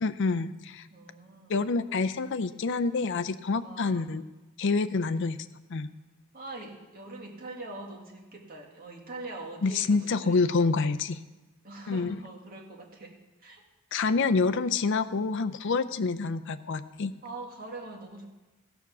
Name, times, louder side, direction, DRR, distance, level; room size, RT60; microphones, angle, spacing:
voice 1, 0.0-0.9 1.5-4.2 4.6-5.4 5.7-5.9 9.6-11.2 11.9-12.2 13.9-17.1, left 4 dB, 55° left, 10 dB, 0.5 m, -27 dB
voice 2, 0.9-1.6 3.6-4.1 6.3-10.5 11.6-13.1 13.4-13.6 13.9-14.0 17.2-18.3, right 2 dB, 40° right, 0 dB, 1.9 m, -43 dB
14.5 x 7.1 x 6.0 m, 1.1 s
head